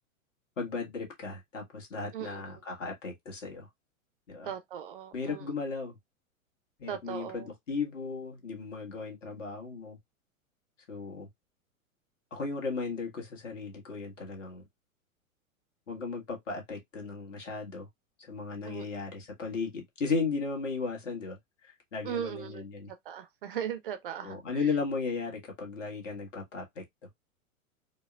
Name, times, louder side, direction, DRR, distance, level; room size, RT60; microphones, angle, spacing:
voice 1, 0.6-3.7 4.3-4.5 5.1-6.0 6.8-10.0 10.9-11.3 12.3-14.6 15.9-17.9 18.2-21.4 21.6-22.9 24.2-26.8, left 4 dB, 60° left, 1.6 m, -35 dB
voice 2, 4.4-5.4 6.9-7.5 18.6-18.8 22.0-22.6 23.1-24.4, right 9 dB, 40° right, 0.5 m, -37 dB
4.4 x 2.1 x 2.2 m
figure-of-eight pair, 100°, 42 cm